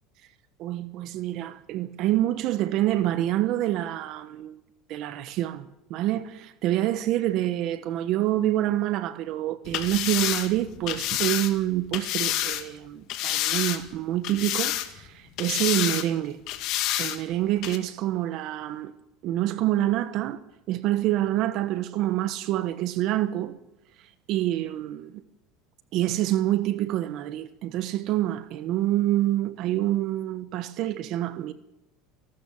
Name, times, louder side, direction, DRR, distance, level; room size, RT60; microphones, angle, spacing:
voice 1, 0.6-4.6 4.9-16.4 17.0-18.9 19.2-20.4 20.7-23.6 24.3-25.2 25.9-31.5, right 14 dB, 55° right, 1.2 m, -27 dB
sound 1, 9.6-12.6 13.1-14.0 14.2-15.1 15.4-16.1 16.5-17.2 17.6-17.8, left 13 dB, 60° left, 2.0 m, -28 dB
29.0 x 12.5 x 7.2 m
supercardioid pair, 115°, 0 cm